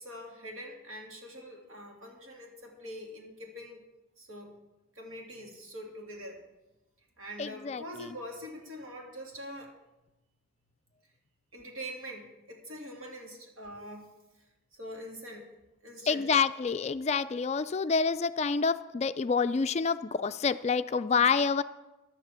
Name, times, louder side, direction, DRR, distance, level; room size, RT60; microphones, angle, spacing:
voice 1, 0.0-3.8 4.2-4.6 4.9-6.4 7.2-9.7 11.5-14.1 14.8-15.5 15.8-16.3, equal, 80° right, 0 dB, 2.7 m, -44 dB
voice 2, 7.4-7.8 16.1-21.6, left 5 dB, 35° left, 12 dB, 0.3 m, -27 dB
11.0 x 7.6 x 8.1 m, 1.0 s
head